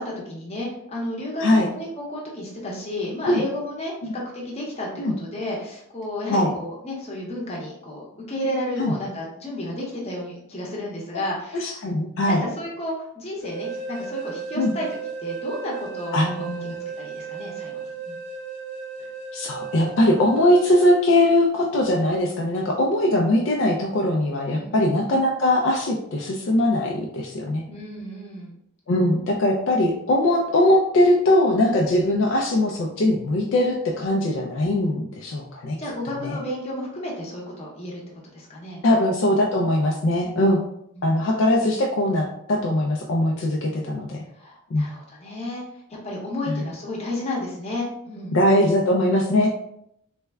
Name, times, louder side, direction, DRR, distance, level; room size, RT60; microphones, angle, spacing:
voice 1, 0.0-11.8 12.4-14.9 15.2-18.2 24.5-24.7 27.7-28.5 35.8-38.0 38.3-38.8 40.9-41.2 44.3-45.6 45.9-48.4, left 1 dB, 30° left, -3 dB, 0.8 m, -32 dB
voice 2, 11.5-12.4 14.6-14.7 16.1-16.8 19.3-27.6 28.9-35.8 36.2-36.4 38.8-40.6 41.0-44.2 44.7-44.9 46.5-46.6 48.3-49.5, left 1 dB, 55° left, 0 dB, 0.4 m, -21 dB
sound 1, 13.4-21.0, right 6 dB, 45° right, 0.7 m, -34 dB
3.3 x 2.2 x 3.3 m, 0.75 s
head